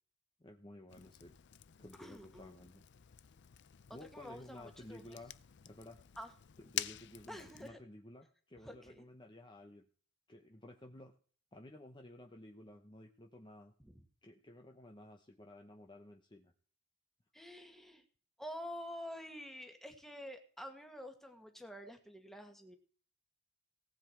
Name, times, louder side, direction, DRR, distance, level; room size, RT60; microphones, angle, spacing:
voice 1, 0.4-1.4 1.8-2.8 3.9-5.3 5.6-6.0 6.7-9.9 10.3-11.1 11.5-13.7 14.2-16.5, left 1 dB, 20° left, 3 dB, 0.9 m, -54 dB
Fire, 0.9-7.7, left 13 dB, 55° left, 0.5 m, -48 dB
voice 2, 2.0-2.6 3.9-5.2 6.2-6.3 7.3-7.8 8.6-9.0 13.8-14.0 17.3-18.0 18.4-22.8, equal, ahead, 5 dB, 1.7 m, -48 dB
18.0 x 8.2 x 4.6 m, 0.44 s
head